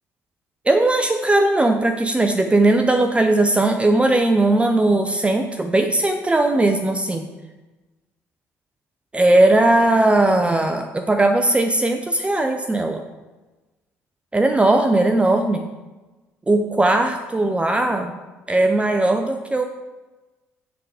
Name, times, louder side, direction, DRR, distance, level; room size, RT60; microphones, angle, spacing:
voice 1, 0.7-7.3 9.1-13.0 14.3-15.7 16.5-18.2 18.5-19.6, right 2 dB, 15° right, 6 dB, 0.6 m, -18 dB
6.8 x 3.8 x 4.9 m, 1.2 s
hypercardioid pair, 65°, 7 cm